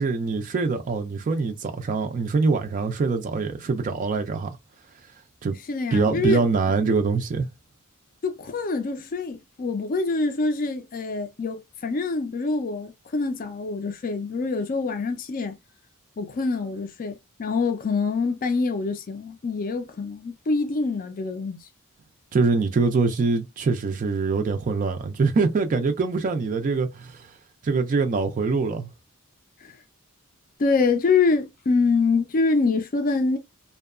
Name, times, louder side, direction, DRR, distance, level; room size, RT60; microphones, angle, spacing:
voice 1, 0.0-4.6 5.4-5.6 5.9-7.5 22.3-27.4 27.6-28.9, right 4 dB, 35° right, 0.3 m, -24 dB
voice 2, 5.7-6.4 8.2-15.6 16.2-21.6 29.6-29.7 30.6-33.4, left 4 dB, 40° left, 0.4 m, -25 dB
2.7 x 2.2 x 2.3 m
head